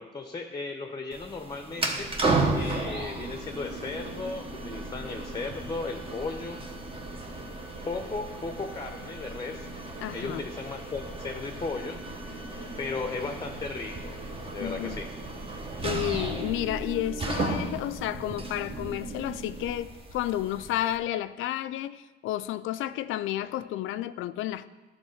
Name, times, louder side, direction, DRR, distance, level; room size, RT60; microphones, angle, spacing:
voice 1, 0.0-2.2 2.5-6.7 7.8-9.7 10.1-12.1 12.8-14.2 14.5-15.2, left 3 dB, 20° left, 0.7 m, -36 dB
sound 1, 1.1-21.0, right 3 dB, 30° right, 1.2 m, -35 dB
sound 2, 1.7-19.7, right 1 dB, 65° right, 1.4 m, -43 dB
voice 2, 10.0-10.5 14.6-15.0 15.8-24.7, left 13 dB, 85° left, 0.4 m, -31 dB
11.5 x 3.9 x 6.3 m
cardioid pair, 90°, 20 cm